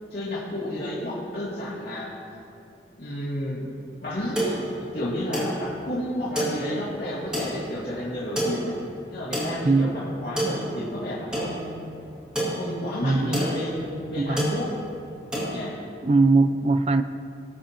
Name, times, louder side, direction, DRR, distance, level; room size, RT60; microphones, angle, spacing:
voice 1, 0.1-2.2 3.0-3.6 4.0-4.6 4.9-8.7 9.1-11.8 12.5-14.7 15.5-15.8, left 1 dB, 60° left, -10 dB, 2.1 m, -31 dB
sound 1, 4.0-15.6, right 1 dB, 5° right, 2.4 m, -31 dB
voice 2, 13.0-13.6 14.2-14.6 16.0-17.0, right 3 dB, 35° right, 10 dB, 0.3 m, -21 dB
19.0 x 7.7 x 2.8 m, 2.5 s
head